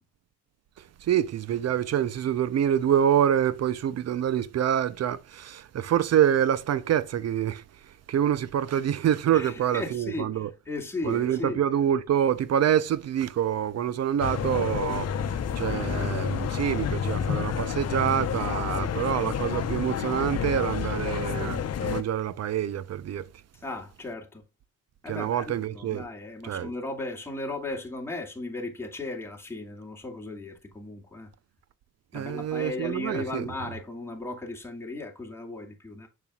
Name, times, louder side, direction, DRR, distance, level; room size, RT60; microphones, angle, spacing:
voice 1, 1.0-10.5 11.0-23.3 25.1-26.0 26.4-26.7 32.1-33.5, right 10 dB, 55° right, 0.7 m, -26 dB
voice 2, 9.3-11.6 23.5-24.4 25.0-31.3 32.1-36.1, left 2 dB, 10° left, 2.2 m, -36 dB
sound 1, 14.2-22.0, left 8 dB, 55° left, 0.9 m, -29 dB
6.9 x 6.2 x 2.4 m
cardioid pair, 90°, 30 cm